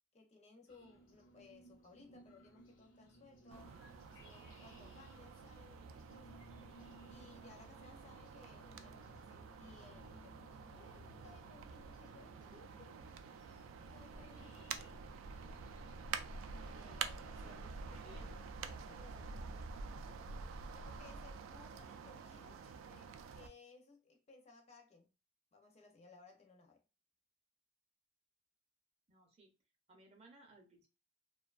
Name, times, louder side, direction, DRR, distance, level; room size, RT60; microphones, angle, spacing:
voice 1, 0.1-3.7 4.1-6.5 7.1-13.0 13.8-14.9 16.5-19.8 20.7-25.1 25.5-26.8, left 4 dB, 35° left, 0.4 m, -62 dB
sound 1, 0.7-17.7, equal, 75° left, 0.6 m, -62 dB
sound 2, 3.5-23.5, right 5 dB, 85° right, 0.3 m, -48 dB
voice 2, 17.9-18.3 29.1-29.5 29.9-30.9, right 1 dB, 30° right, 0.5 m, -62 dB
2.5 x 2.2 x 2.3 m
head